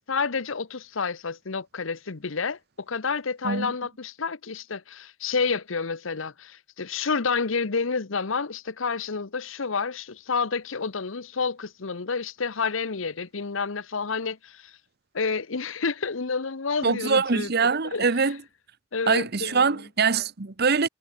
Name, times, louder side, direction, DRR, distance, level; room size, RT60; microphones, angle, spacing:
voice 1, 0.1-14.8 15.1-17.5 17.9-18.1 18.9-19.8, left 5 dB, 75° left, 1.0 m, -29 dB
voice 2, 16.8-18.4 19.1-20.9, right 5 dB, 55° right, 1.1 m, -23 dB
head